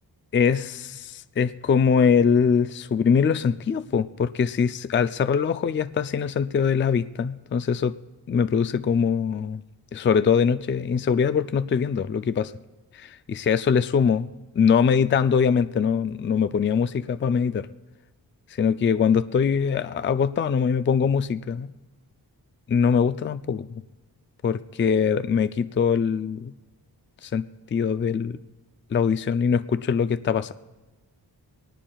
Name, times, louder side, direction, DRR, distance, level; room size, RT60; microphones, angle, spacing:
voice 1, 0.3-8.0 8.3-9.6 9.9-12.5 12.9-14.3 14.6-17.7 18.6-21.7 22.7-23.8 24.4-26.5 27.2-27.4 27.7-28.4 28.9-30.5, left 6 dB, 30° left, 12 dB, 0.4 m, -22 dB
24.0 x 19.0 x 2.3 m, 1.2 s
wide cardioid pair, 145°, 39 cm